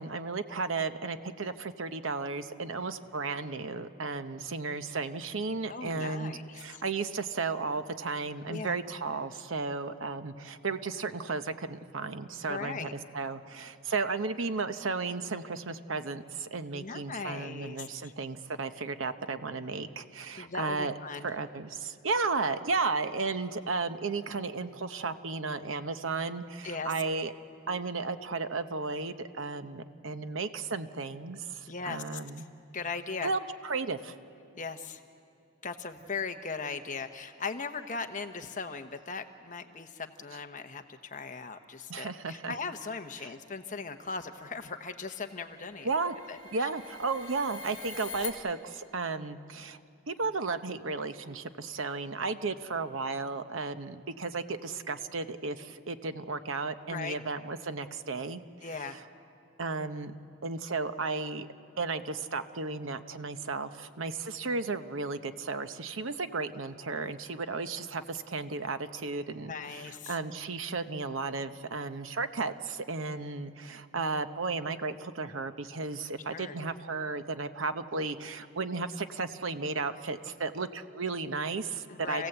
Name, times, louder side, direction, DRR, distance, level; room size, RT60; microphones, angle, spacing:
voice 1, 0.0-20.9 21.2-27.3 27.7-32.5 33.2-34.1 41.9-42.5 43.2-43.3 45.8-46.2 46.5-49.8 50.1-58.4 58.7-59.0 59.6-60.1 60.4-61.5 61.8-82.3, right 4 dB, 75° right, 10 dB, 0.9 m, -34 dB
voice 2, 5.7-6.8 8.5-8.7 12.5-12.9 16.7-18.1 20.4-21.3 26.6-26.9 31.7-32.2 32.7-33.3 34.6-35.0 35.6-45.9 46.3-46.7 56.9-57.2 58.6-59.0 69.4-70.2 76.1-76.5 81.9-82.3, left 4 dB, 40° left, 7 dB, 1.0 m, -38 dB
sound 1, 43.7-48.3, left 5 dB, 20° left, 2.2 m, -46 dB
29.0 x 16.5 x 8.0 m, 2.7 s
head